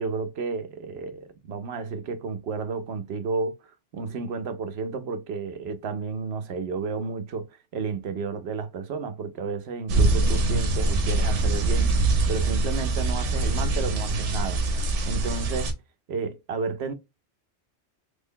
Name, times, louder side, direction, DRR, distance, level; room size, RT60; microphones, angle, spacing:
voice 1, 0.0-3.5 3.9-7.5 7.7-14.6 15.0-15.7 16.1-16.9, right 4 dB, 70° right, 0.8 m, -32 dB
sound 1, 9.9-15.7, right 2 dB, 90° right, 1.1 m, -24 dB
3.3 x 2.2 x 3.5 m
omnidirectional pair, 1.2 m